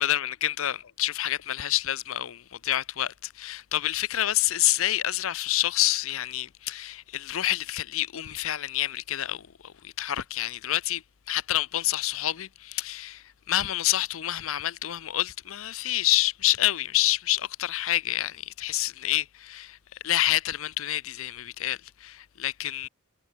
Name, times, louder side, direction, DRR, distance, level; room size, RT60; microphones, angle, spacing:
voice 1, 0.0-19.8 20.0-22.9, left 14 dB, 65° left, 0.6 m, -28 dB
head